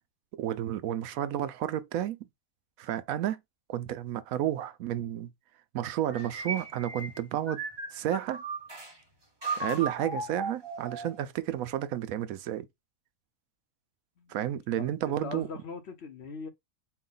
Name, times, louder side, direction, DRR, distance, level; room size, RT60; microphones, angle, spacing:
voice 1, 0.4-2.3 2.8-3.4 3.7-5.3 5.7-7.6 7.9-8.4 9.6-12.7 14.3-15.5, right 11 dB, 90° right, 1.0 m, -31 dB
sound 1, 6.1-8.9 9.4-11.2, right 3 dB, 20° right, 1.1 m, -36 dB
voice 2, 14.8-16.5, left 5 dB, 55° left, 1.0 m, -41 dB
4.6 x 2.2 x 3.8 m
omnidirectional pair, 1.4 m